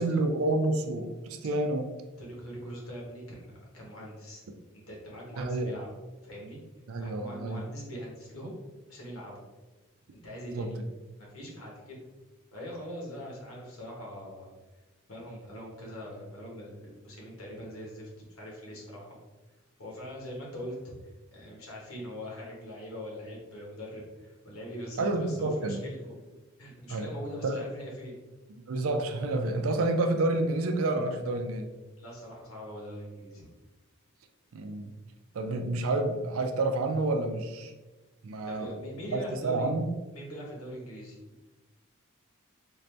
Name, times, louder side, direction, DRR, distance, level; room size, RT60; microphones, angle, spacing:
voice 1, 0.0-1.9 5.3-5.7 6.9-7.6 10.5-10.7 25.0-25.8 26.9-27.1 27.4-27.6 28.7-31.7 34.5-34.9 35.3-37.7 38.2-38.7 39.1-39.9, right 2 dB, 80° right, 5 dB, 0.5 m, -29 dB
voice 2, 2.2-4.4 4.9-5.9 6.2-6.6 7.0-8.6 8.9-9.4 10.1-10.8 11.2-12.0 12.5-14.5 15.1-19.2 19.8-20.7 21.0-26.2 26.6-28.2 32.0-33.5 38.4-39.7 40.1-41.3, equal, 85° left, -2 dB, 1.3 m, -42 dB
3.9 x 2.6 x 3.3 m, 1.2 s
head